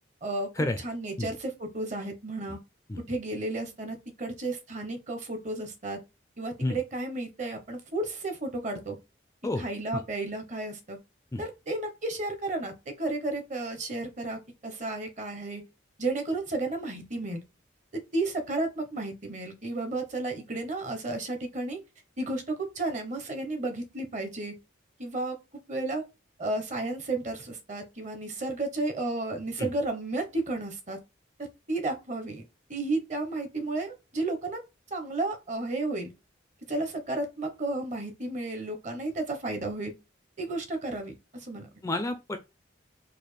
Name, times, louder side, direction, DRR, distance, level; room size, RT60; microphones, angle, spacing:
voice 1, 0.8-2.6 3.1-6.0 6.4-9.0 9.6-11.0 11.4-12.7 13.0-15.6 16.0-17.4 17.9-21.8 22.2-24.6 25.0-25.4 25.7-26.0 26.4-31.0 31.7-32.4 32.7-34.6 34.9-36.1 36.7-39.9 40.4-41.7, right 2 dB, 40° right, 0.9 m, -32 dB
voice 2, 41.8-42.4, left 2 dB, 15° left, 0.3 m, -29 dB
4.1 x 2.5 x 3.2 m
head